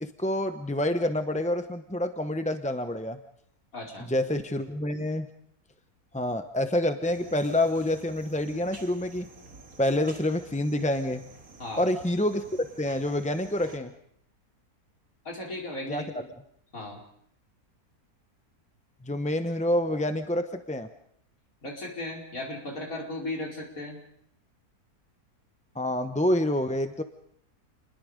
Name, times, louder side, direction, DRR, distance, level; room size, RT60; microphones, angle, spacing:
voice 1, 0.0-3.2 4.0-5.3 6.1-9.3 9.8-11.2 11.8-13.9 15.9-16.0 19.0-20.9 25.8-27.0, left 1 dB, 10° left, 8 dB, 0.5 m, -27 dB
voice 2, 3.7-4.1 11.6-11.8 15.3-16.2 16.7-17.0 21.6-24.0, left 2 dB, 60° left, -1 dB, 5.3 m, -36 dB
sound 1, 7.0-13.8, right 3 dB, 65° right, 2.6 m, -50 dB
28.5 x 21.0 x 5.1 m, 0.70 s
omnidirectional pair, 1.6 m